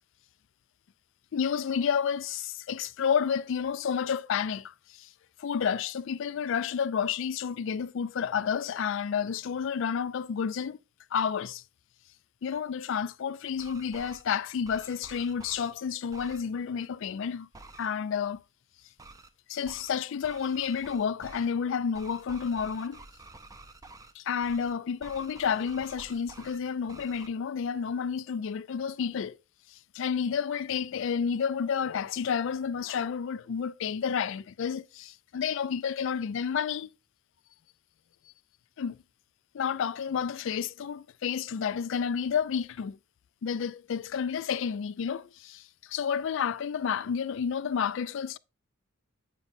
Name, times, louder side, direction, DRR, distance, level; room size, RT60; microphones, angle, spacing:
voice 1, 1.3-5.1 5.4-10.8 11.1-11.6 12.4-17.5 17.8-18.4 19.5-23.0 24.2-29.4 29.9-36.9 38.8-39.0 39.5-43.0 43.4-48.4, left 7 dB, 60° left, 0.3 m, -30 dB
sound 1, 13.5-14.2 14.6-15.7 16.1-16.4 17.5-17.9 19.0-19.3 19.6-20.0 20.2-21.5 21.9-24.1 24.4-24.7 25.0-26.6 26.9-27.3, right 3 dB, 15° right, 0.5 m, -49 dB
9.1 x 5.2 x 2.6 m
head